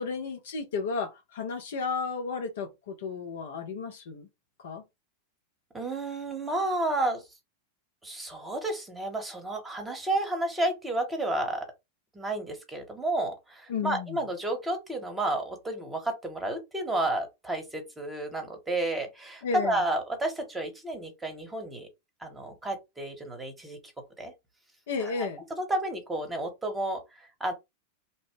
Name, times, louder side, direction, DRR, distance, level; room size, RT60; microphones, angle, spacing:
voice 1, 0.0-4.3 4.6-4.8 13.7-14.2 19.4-19.8 24.9-25.4, left 5 dB, 60° left, 0.6 m, -33 dB
voice 2, 5.7-7.2 8.0-11.7 12.1-21.9 22.2-23.8 24.2-24.3 25.0-27.5, right 2 dB, 10° right, 1.0 m, -31 dB
2.9 x 2.1 x 3.0 m
figure-of-eight pair, 90°, 0 cm